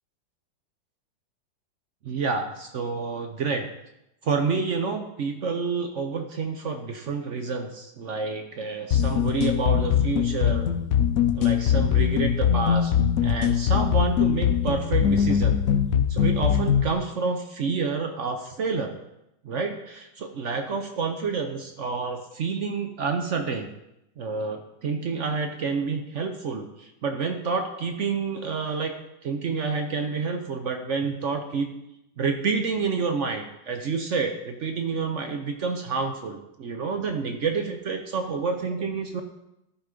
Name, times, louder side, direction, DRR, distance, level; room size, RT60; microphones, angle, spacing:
voice 1, 2.0-3.7 4.2-10.7 11.3-12.9 13.2-15.6 16.1-19.0 19.4-23.7 24.2-28.9 29.2-31.7 32.2-39.2, right 4 dB, 65° right, 5 dB, 0.7 m, -28 dB
sound 1, 8.9-16.9, left 8 dB, 85° left, 0.6 m, -22 dB
13.0 x 5.1 x 5.1 m, 0.89 s
omnidirectional pair, 2.1 m